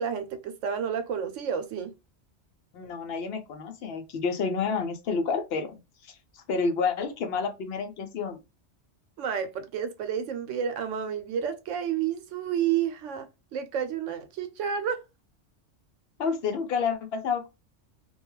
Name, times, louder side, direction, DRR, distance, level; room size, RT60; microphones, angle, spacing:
voice 1, 0.0-1.9 9.2-15.0, right 8 dB, 85° right, 0.9 m, -30 dB
voice 2, 2.7-5.8 6.0-8.4 16.2-17.5, left 5 dB, 65° left, 0.7 m, -29 dB
2.3 x 2.2 x 3.0 m
omnidirectional pair, 1.2 m